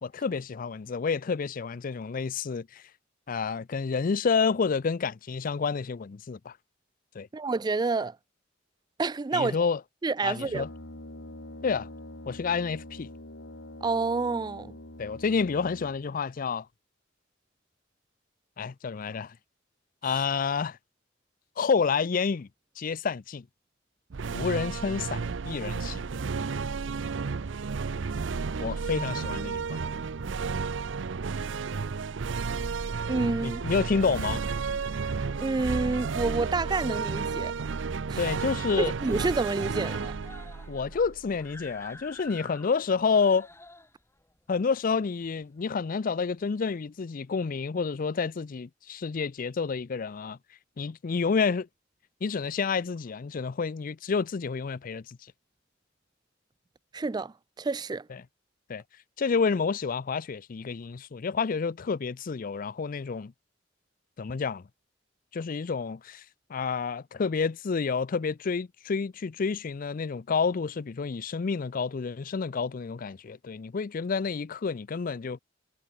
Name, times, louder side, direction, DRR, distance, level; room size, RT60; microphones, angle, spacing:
voice 1, 0.0-2.8 3.3-6.5 7.1-7.3 9.3-9.8 10.2-10.7 11.6-11.9 12.3-13.1 15.0-16.7 18.6-19.3 20.0-20.8 21.6-22.5 22.8-23.4 24.3-26.0 28.6-29.8 33.4-34.4 38.2-38.9 40.7-43.5 44.5-50.4 50.8-51.7 52.2-55.2 58.1-58.2 58.7-58.8 59.2-63.3 64.2-64.6 65.3-66.2 66.5-75.4, left 5 dB, 45° left, 0.4 m, -29 dB
voice 2, 7.3-8.2 9.0-9.6 10.0-10.6 13.8-14.7 20.0-20.1 33.1-33.6 35.3-37.5 38.1-38.2 38.8-40.1 56.9-58.1, right 3 dB, 20° right, 0.4 m, -28 dB
Brass instrument, 10.4-16.2, left 1 dB, 80° left, 2.8 m, -45 dB
sound 1, 24.1-41.6, right 5 dB, 75° right, 0.6 m, -32 dB
Screaming, 36.5-37.0 37.4-37.5 37.8-37.9 38.2-38.7 39.0-45.8 46.6-46.7, left 2 dB, 15° left, 5.5 m, -50 dB
head